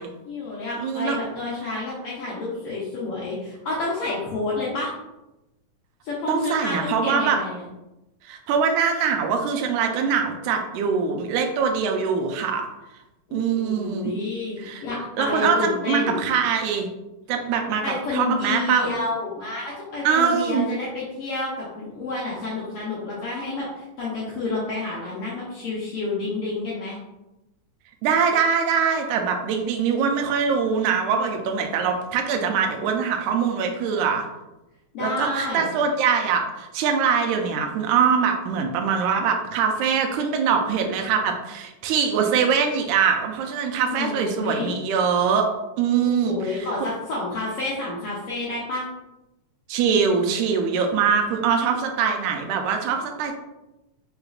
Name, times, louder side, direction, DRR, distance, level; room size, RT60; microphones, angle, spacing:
voice 1, 0.2-4.9 6.0-7.6 13.3-16.2 17.8-27.0 34.9-35.7 43.9-44.7 46.0-48.8, left 3 dB, 70° left, -6 dB, 1.4 m, -29 dB
voice 2, 0.8-1.2 6.3-7.4 8.3-12.7 13.3-14.2 14.6-14.8 15.2-16.9 17.3-17.8 18.1-18.9 20.0-20.7 28.0-34.3 35.0-45.5 45.8-46.7 49.7-53.4, right 6 dB, 90° right, 4 dB, 2.1 m, -23 dB
5.1 x 3.9 x 2.4 m, 0.97 s
omnidirectional pair, 3.5 m